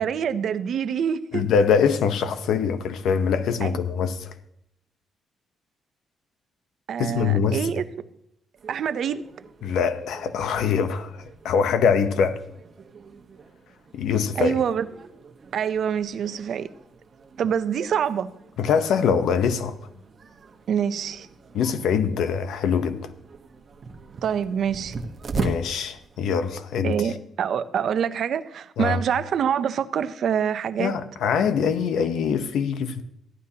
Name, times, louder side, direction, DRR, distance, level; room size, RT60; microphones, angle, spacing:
voice 1, 0.0-1.4 3.6-3.8 6.9-8.1 8.7-9.2 14.4-14.9 15.5-16.7 17.4-18.3 20.7-21.3 24.2-25.0 26.8-30.9, right 8 dB, 65° right, 0.6 m, -26 dB
voice 2, 1.3-4.3 7.0-7.7 9.6-12.4 13.9-14.5 18.6-19.7 21.5-23.0 25.4-27.0 28.8-29.0 30.8-33.0, left 6 dB, 85° left, 0.9 m, -23 dB
sound 1, 8.6-26.5, right 3 dB, 45° right, 1.1 m, -40 dB
14.5 x 11.0 x 2.9 m
cardioid pair, 115°, 0 cm